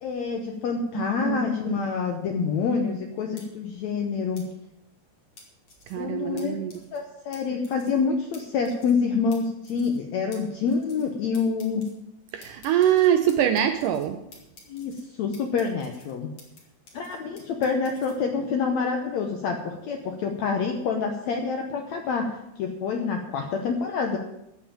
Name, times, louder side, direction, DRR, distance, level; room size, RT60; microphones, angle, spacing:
voice 1, 0.0-4.4 5.9-6.6 6.9-11.9 14.7-16.3 16.9-24.2, left 5 dB, 75° left, 4 dB, 1.7 m, -27 dB
voice 2, 0.9-1.8 5.9-6.7 12.3-14.2, right 10 dB, 80° right, 8 dB, 1.9 m, -24 dB
sound 1, 3.4-3.5 4.4-4.5 5.4-5.9 6.4-6.5 6.7-7.0 7.3-7.4 7.6-8.0 8.3-8.4 8.6-9.0 9.3-9.4 9.6-10.0 10.3-10.4 10.7-11.1 11.3-11.9 12.4-14.1 14.3-15.0 15.3-16.6 16.9-18.1, left 3 dB, 40° left, 3.1 m, -50 dB
14.5 x 5.6 x 8.8 m, 0.86 s
omnidirectional pair, 4.4 m